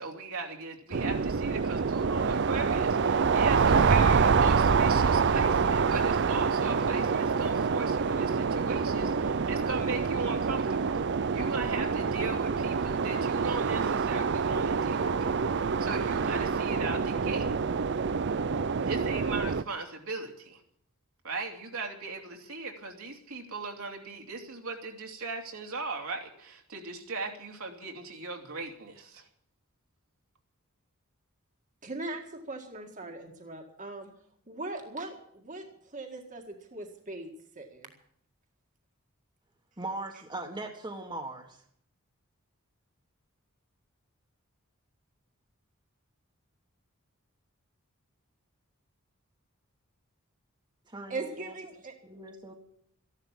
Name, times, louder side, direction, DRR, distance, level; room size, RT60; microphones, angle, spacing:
voice 1, 0.0-11.0 11.3-15.3 15.8-17.5 18.8-20.6 21.2-29.2, right 3 dB, 75° right, 1 dB, 3.0 m, -38 dB
sound 1, 0.9-19.6, right 5 dB, 55° right, 0.5 m, -26 dB
voice 2, 31.8-34.1 34.5-37.3 37.6-37.9 51.1-51.9, right 2 dB, 35° right, 3 dB, 1.9 m, -40 dB
voice 3, 39.8-41.6 50.8-51.5 52.0-52.5, right 2 dB, 20° right, 3 dB, 1.6 m, -39 dB
14.5 x 11.5 x 7.4 m, 0.68 s
head